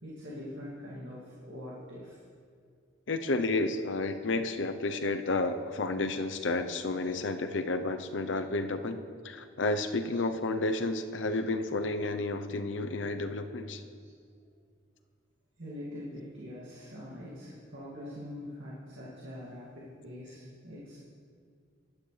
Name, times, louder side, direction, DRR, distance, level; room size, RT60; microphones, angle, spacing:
voice 1, 0.0-2.2 4.0-4.1 4.8-4.9 7.0-7.1 10.1-10.2 14.0-14.1 15.6-21.0, left 1 dB, 85° right, -7 dB, 2.3 m, -44 dB
voice 2, 3.1-9.0 9.2-13.8, left 2 dB, 80° left, 8 dB, 0.7 m, -31 dB
15.5 x 11.5 x 3.3 m, 2.1 s
head